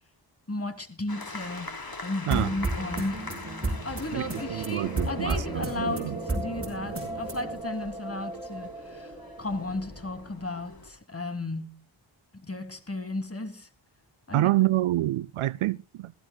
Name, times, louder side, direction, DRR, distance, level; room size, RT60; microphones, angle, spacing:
voice 1, 0.5-3.4 3.7-11.8 12.3-13.7 14.3-14.5, left 2 dB, 30° left, 2.8 m, -34 dB
sound 1, 1.1-10.9, left 3 dB, 45° left, 4.1 m, -43 dB
sound 2, 2.3-7.6, right 2 dB, 25° right, 5.3 m, -33 dB
sound 3, 4.4-10.2, right 2 dB, 10° right, 4.0 m, -39 dB
voice 2, 4.5-6.2 14.3-16.1, right 15 dB, 75° right, 0.5 m, -27 dB
20.5 x 15.5 x 2.3 m
cardioid pair, 45°, 50 cm